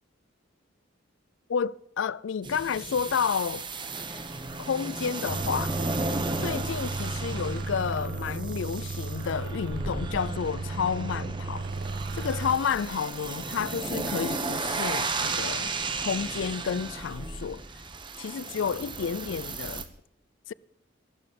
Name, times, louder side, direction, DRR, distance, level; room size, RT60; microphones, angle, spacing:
voice 1, 1.5-3.7 4.6-5.8 6.4-11.7 12.1-15.7 16.0-17.6 18.2-19.9 20.5-20.6, left 7 dB, 70° left, 0.4 m, -30 dB
sound 1, 2.4-19.8, right 3 dB, 25° right, 1.1 m, -34 dB
sound 2, 5.3-12.6, right 3 dB, 50° right, 0.6 m, -35 dB
sound 3, 5.3-16.2, equal, 80° right, 3.4 m, -55 dB
13.5 x 12.0 x 5.4 m
head